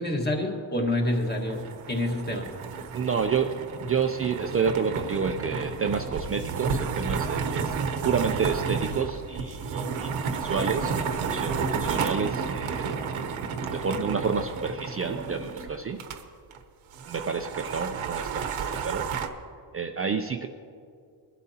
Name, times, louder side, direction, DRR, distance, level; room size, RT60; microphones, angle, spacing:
voice 1, 0.0-1.6 1.9-2.5, left 1 dB, 20° left, 1 dB, 1.5 m, -27 dB
sound 1, 1.0-16.2 16.5-16.6 16.9-19.3, right 5 dB, 80° right, 1.0 m, -31 dB
voice 2, 2.9-7.7 8.0-13.0 13.7-16.0 17.1-19.1 19.7-20.5, right 6 dB, 30° right, 5 dB, 0.4 m, -29 dB
22.5 x 12.0 x 2.8 m, 2.3 s
wide cardioid pair, 180°, 48 cm